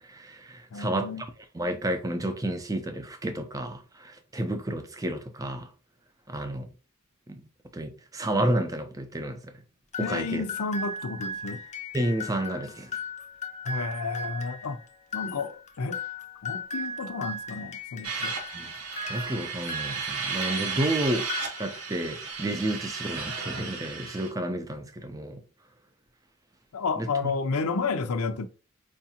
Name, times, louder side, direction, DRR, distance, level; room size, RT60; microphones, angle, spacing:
voice 1, 0.0-1.1 1.5-5.7 6.3-6.7 7.3-7.4 7.7-9.5 10.0-10.5 11.9-12.9 18.5-18.7 19.1-21.3 21.6-25.4 27.0-27.3, right 1 dB, 15° right, 0.5 m, -31 dB
voice 2, 0.7-1.2 10.0-11.6 13.6-14.8 15.1-16.0 16.4-18.3 26.7-28.5, left 4 dB, 80° left, 0.5 m, -31 dB
sound 1, 9.9-20.8 21.2-22.0, left 2 dB, 30° left, 0.5 m, -37 dB
sound 2, 18.0-24.3, right 5 dB, 85° right, 0.9 m, -34 dB
4.7 x 2.5 x 2.8 m
head